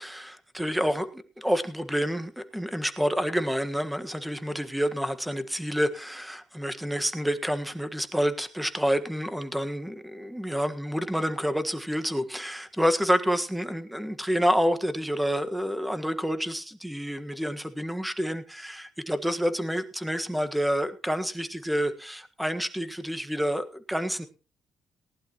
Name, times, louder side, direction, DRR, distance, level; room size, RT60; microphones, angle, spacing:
voice 1, 0.0-24.3, equal, 5° right, 9 dB, 1.6 m, -28 dB
19.0 x 11.5 x 3.0 m, 0.34 s
cardioid pair, 90°, 0 cm